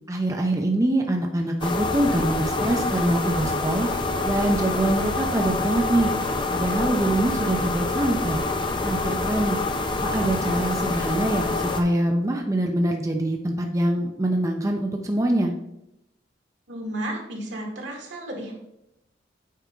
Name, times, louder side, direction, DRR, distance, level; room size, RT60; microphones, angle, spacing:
voice 1, 0.1-3.9 4.2-6.1 6.5-8.4 8.8-9.6 10.0-15.5, right 1 dB, 15° right, 3 dB, 0.5 m, -24 dB
sound 1, 1.6-11.8, left 2 dB, 25° left, 0.6 m, -26 dB
voice 2, 16.7-18.6, right 1 dB, 80° right, 0 dB, 2.0 m, -33 dB
8.3 x 4.8 x 3.7 m, 0.82 s
head